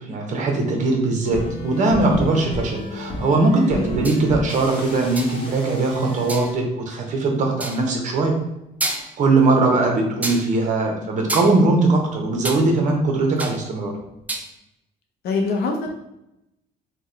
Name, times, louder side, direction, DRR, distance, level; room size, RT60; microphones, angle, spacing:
voice 1, 0.0-8.4 8.9-13.9, right 3 dB, 45° right, 2 dB, 0.7 m, -20 dB
sound 1, 1.2-6.5, equal, 30° left, 0.8 m, -31 dB
voice 2, 3.7-4.0 15.2-16.0, left 3 dB, 70° left, 1 dB, 0.5 m, -24 dB
sound 2, 4.0-4.3 5.2-5.5 6.3-6.5 7.6-7.9 8.4-8.5 8.8-9.3 10.2-10.5 11.3-12.6 12.9-13.7 14.0-14.5, right 1 dB, 10° right, 0.3 m, -29 dB
2.8 x 2.2 x 3.7 m, 0.87 s
cardioid pair, 110°, 17 cm